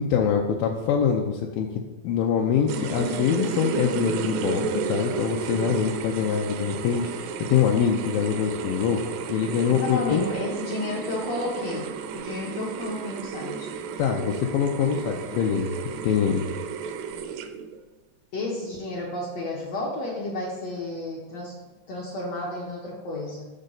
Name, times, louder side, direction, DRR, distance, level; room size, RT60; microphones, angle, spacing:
voice 1, 0.0-1.7 2.0-10.3 14.0-15.8 16.0-16.5, left 7 dB, 90° left, 0 dB, 2.4 m, -24 dB
sound 1, 2.7-17.8, right 6 dB, 80° right, 2.2 m, -33 dB
voice 2, 9.7-13.7 18.3-21.6 21.9-23.4, left 2 dB, 65° left, -3 dB, 1.7 m, -32 dB
7.2 x 6.5 x 3.9 m, 1.2 s
omnidirectional pair, 4.1 m